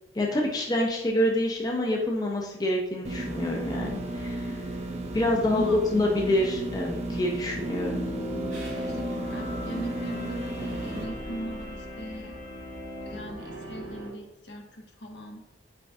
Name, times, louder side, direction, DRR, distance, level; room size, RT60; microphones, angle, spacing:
voice 1, 0.1-4.5 5.1-8.0, left 1 dB, 20° left, 0 dB, 0.5 m, -27 dB
sound 1, 3.0-11.0, right 1 dB, 35° right, 0.6 m, -34 dB
sound 2, 3.6-14.1, right 1 dB, 80° right, 1.5 m, -45 dB
voice 2, 5.5-5.8 8.8-12.4 13.1-15.5, equal, 70° left, 2 dB, 0.8 m, -39 dB
sound 3, 7.5-13.3, equal, 45° left, 1.6 m, -37 dB
5.0 x 4.4 x 2.4 m, 0.93 s
head